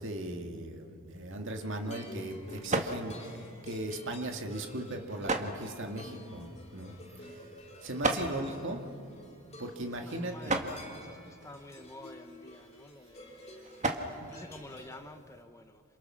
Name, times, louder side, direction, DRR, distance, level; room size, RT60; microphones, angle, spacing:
voice 1, 0.0-7.4 7.8-8.8 9.6-10.6 13.9-14.3, right 1 dB, 60° right, 4 dB, 2.3 m, -38 dB
sound 1, 1.1-15.4, right 2 dB, 35° right, 1.7 m, -39 dB
sound 2, 1.6-15.0, left 1 dB, 30° left, 3.6 m, -50 dB
voice 2, 8.1-8.7 9.9-15.8, left 2 dB, 15° left, 8 dB, 0.8 m, -50 dB
28.5 x 27.5 x 6.4 m, 2.5 s
head